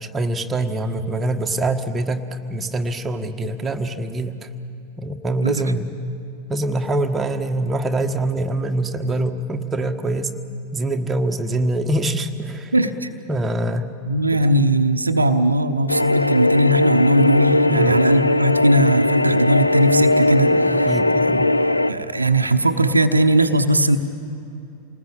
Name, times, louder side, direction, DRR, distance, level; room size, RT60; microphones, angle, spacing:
voice 1, 0.0-4.5 5.0-5.9 6.5-10.3 10.7-12.7 13.3-13.9 14.3-14.4 17.6-18.1 20.7-21.5, right 2 dB, 15° right, 5 dB, 1.5 m, -24 dB
voice 2, 12.7-13.1 14.1-20.9 21.9-24.0, right 1 dB, 80° right, 8 dB, 1.0 m, -19 dB
sound 1, 15.9-21.9, left 1 dB, 85° left, 0.5 m, -18 dB
28.5 x 19.5 x 9.0 m, 2.8 s
figure-of-eight pair, 90°, 0 cm